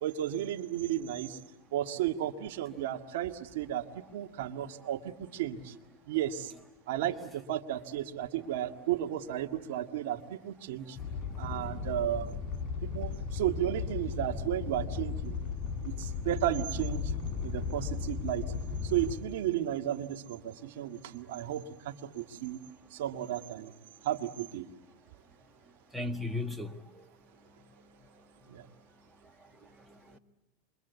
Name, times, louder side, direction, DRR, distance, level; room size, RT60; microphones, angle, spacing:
voice 1, 0.0-1.4 1.7-3.9 4.1-5.7 6.1-6.5 6.9-11.0 11.4-12.3 12.8-15.4 15.8-17.1 17.4-18.5 18.8-22.6 22.9-23.7 24.0-24.7 28.5-28.6, right 12 dB, 70° right, 2.0 m, -33 dB
Animal, 11.0-19.1, left 5 dB, 35° left, 7.8 m, -36 dB
voice 2, 11.5-12.0 25.9-27.1 29.8-30.2, left 2 dB, 5° right, 1.7 m, -38 dB
27.5 x 23.5 x 8.3 m
hypercardioid pair, 110°, 0 cm